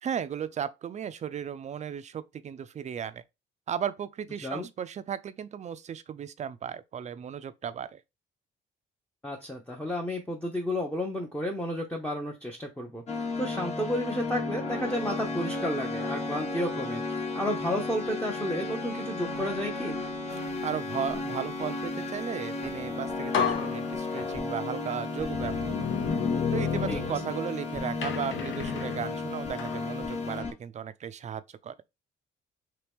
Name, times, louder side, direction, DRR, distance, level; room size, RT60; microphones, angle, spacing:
voice 1, 0.0-3.2 3.7-8.0 20.6-25.8 26.5-31.7, right 8 dB, 35° right, 0.4 m, -35 dB
voice 2, 9.2-13.0 13.4-20.0 26.9-27.0, equal, 5° left, 0.6 m, -32 dB
sound 1, 13.1-30.5, left 3 dB, 35° left, 1.1 m, -33 dB
sound 2, 22.8-22.9 23.3-24.6 25.3-27.6 28.0-29.8, left 7 dB, 70° left, 0.7 m, -32 dB
2.9 x 2.9 x 3.4 m
cardioid pair, 90°, 20 cm